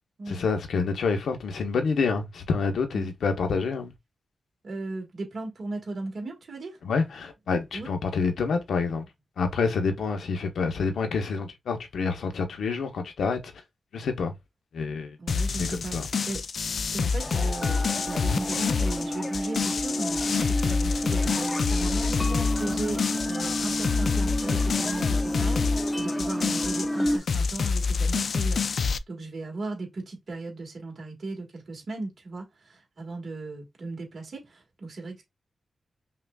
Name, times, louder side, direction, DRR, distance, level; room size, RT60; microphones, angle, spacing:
voice 1, 0.3-3.9 6.8-9.0 9.4-13.5 13.9-14.3 14.7-15.2 15.6-16.1, left 4 dB, 90° left, 0.9 m, -27 dB
voice 2, 4.6-6.8 7.7-7.9 15.2-16.4 16.9-17.8 18.1-35.2, right 2 dB, 55° right, 1.7 m, -36 dB
sound 1, 15.3-29.0, left 5 dB, 65° left, 0.3 m, -27 dB
sound 2, 17.2-27.2, left 1 dB, 15° left, 0.6 m, -30 dB
5.7 x 2.4 x 2.3 m
wide cardioid pair, 100°, 0 cm